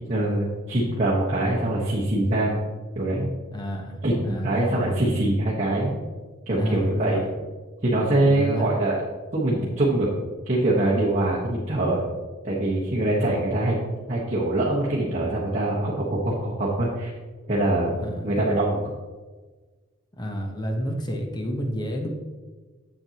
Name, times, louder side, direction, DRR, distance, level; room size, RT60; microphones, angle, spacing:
voice 1, 0.1-2.6 2.9-3.3 4.0-6.0 6.5-7.2 7.8-9.0 9.3-10.1 10.4-12.0 12.4-13.8 14.1-17.1 17.5-17.9 18.2-18.8, right 1 dB, 35° right, -7 dB, 1.2 m, -23 dB
voice 2, 3.5-5.0 6.5-7.3 8.3-8.7 13.2-13.3 18.0-18.3 20.2-22.1, equal, 20° left, 2 dB, 0.9 m, -30 dB
7.8 x 7.7 x 2.9 m, 1.3 s
head